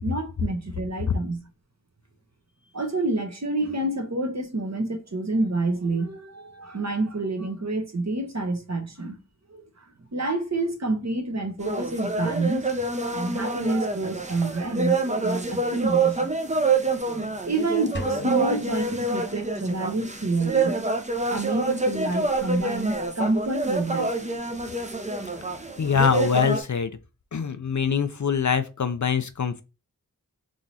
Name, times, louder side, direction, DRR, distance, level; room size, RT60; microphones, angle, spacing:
voice 1, 0.0-1.4 2.7-9.2 9.5-9.8 10.1-12.7 13.1-16.3 17.4-20.8 21.3-24.4, right 2 dB, 50° right, 1.1 m, -28 dB
sound 1, 11.6-26.6, right 3 dB, 20° right, 0.6 m, -27 dB
sound 2, 17.9-20.0, left 1 dB, 30° left, 1.0 m, -37 dB
voice 2, 25.8-26.9 27.3-29.6, left 6 dB, 55° left, 0.5 m, -24 dB
3.8 x 3.0 x 4.1 m
wide cardioid pair, 45°, 35 cm